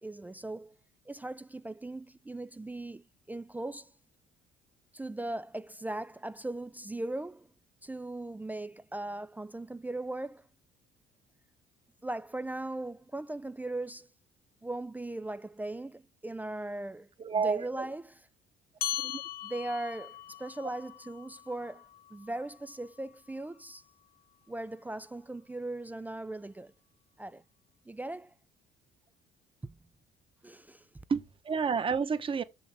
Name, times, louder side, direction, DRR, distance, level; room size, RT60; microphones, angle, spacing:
voice 1, 0.0-0.7 1.1-3.9 4.9-7.5 7.8-10.5 12.0-14.1 14.6-17.1 17.3-18.3 19.4-23.8 24.5-26.7 27.2-27.4 27.9-28.3 29.6-29.8 30.4-30.8, right 2 dB, 10° right, 0.3 m, -39 dB
voice 2, 17.2-17.9 19.0-19.2 31.1-32.4, right 5 dB, 30° right, 1.0 m, -30 dB
sound 1, 18.8-23.6, left 13 dB, 60° left, 0.5 m, -40 dB
6.9 x 5.7 x 3.5 m
cardioid pair, 110°, 17 cm